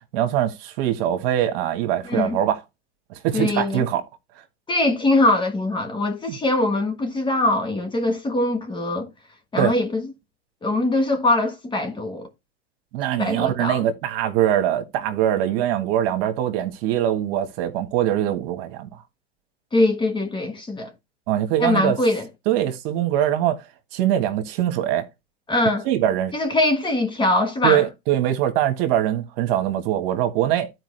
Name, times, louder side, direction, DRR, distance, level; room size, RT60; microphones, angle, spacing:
voice 1, 0.1-2.6 3.1-4.0 6.3-6.4 9.6-9.7 12.9-18.9 21.3-22.0 22.4-23.6 23.9-25.1 25.8-26.3 27.6-30.7, right 11 dB, 60° right, 1.6 m, -22 dB
voice 2, 2.0-2.4 3.3-3.8 4.7-9.1 9.5-10.0 10.6-12.3 13.2-13.8 19.7-20.9 21.6-22.3 25.5-25.9 26.3-27.8, left 2 dB, 15° left, 1.5 m, -22 dB
12.0 x 4.7 x 3.3 m
hypercardioid pair, 115°, 33 cm